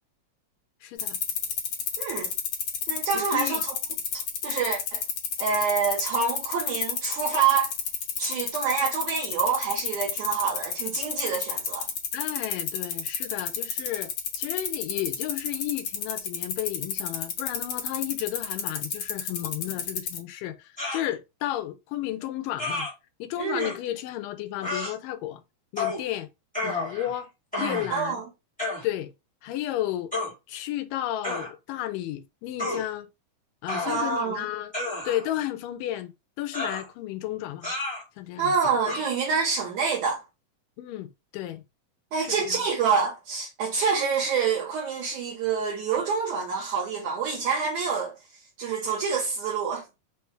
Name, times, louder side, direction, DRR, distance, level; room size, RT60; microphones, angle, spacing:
voice 1, 0.8-1.2 3.1-3.6 12.1-14.1 14.4-22.9 23.2-25.4 25.7-26.3 26.6-27.3 27.6-28.2 28.8-29.1 29.4-30.1 30.5-33.1 33.6-34.7 35.1-36.1 36.4-37.7 38.2-38.5 40.8-41.6 42.2-42.6, left 13 dB, 80° left, 2.2 m, -33 dB
sound 1, 1.0-20.2, left 7 dB, 65° left, 1.8 m, -29 dB
voice 2, 2.0-2.3 2.9-3.8 4.4-5.0 5.4-7.7 8.2-11.9 23.4-23.7 27.9-28.2 33.8-34.4 38.4-40.2 42.1-48.1 48.6-49.8, right 6 dB, 70° right, 2.3 m, -27 dB
sound 2, 20.8-21.1 22.6-22.9 23.6-23.7 24.6-24.9 25.8-26.0 26.5-27.2 27.5-28.0 28.6-28.8 30.1-30.3 31.2-31.5 32.6-32.8 33.7-34.2 34.7-35.4 36.5-36.9 37.6-38.0 38.8-39.0, left 2 dB, 5° left, 0.8 m, -31 dB
5.3 x 2.3 x 3.1 m
omnidirectional pair, 4.0 m